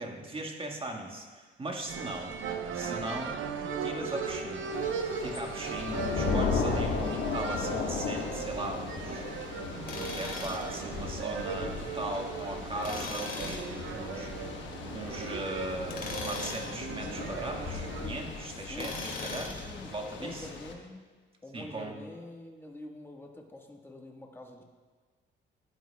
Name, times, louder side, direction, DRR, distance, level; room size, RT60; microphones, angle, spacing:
voice 1, 0.0-2.3 2.7-3.4 3.8-4.8 5.2-9.3 9.9-14.3 14.9-19.5 19.8-20.5 21.5-21.9, right 1 dB, 25° right, 1 dB, 1.7 m, -38 dB
sound 1, 1.9-18.1, right 5 dB, 80° right, 0.9 m, -38 dB
Thunder / Rain, 4.7-20.7, left 5 dB, 70° left, 1.2 m, -36 dB
Tools, 9.9-10.7 12.8-13.7 15.8-16.7 18.8-19.7, left 3 dB, 45° left, 2.3 m, -38 dB
voice 2, 11.5-12.0 13.6-14.4 18.4-21.1 21.4-24.6, left 1 dB, 10° left, 0 dB, 1.5 m, -47 dB
15.0 x 11.0 x 2.3 m, 1.4 s
cardioid pair, 90°, 20 cm